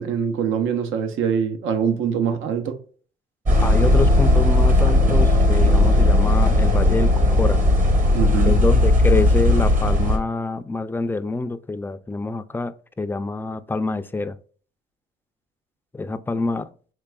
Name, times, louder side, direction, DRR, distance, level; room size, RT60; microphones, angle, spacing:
voice 1, 0.0-2.8 8.1-8.6, right 7 dB, 85° right, 0.7 m, -23 dB
sound 1, 3.5-10.2, left 1 dB, 40° right, 1.0 m, -17 dB
voice 2, 3.6-7.6 8.4-14.4 15.9-16.7, left 3 dB, 10° left, 0.3 m, -26 dB
4.6 x 3.3 x 2.3 m
cardioid pair, 90°, 20 cm